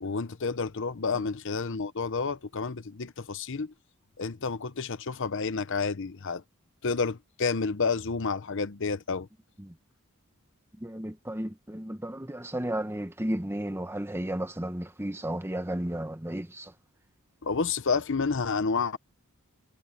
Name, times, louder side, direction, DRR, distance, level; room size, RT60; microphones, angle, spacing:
voice 1, 0.0-3.7 4.2-6.4 6.8-9.3 17.4-19.0, left 4 dB, 55° left, 0.8 m, -30 dB
voice 2, 10.8-16.7, right 1 dB, 10° right, 1.1 m, -33 dB
head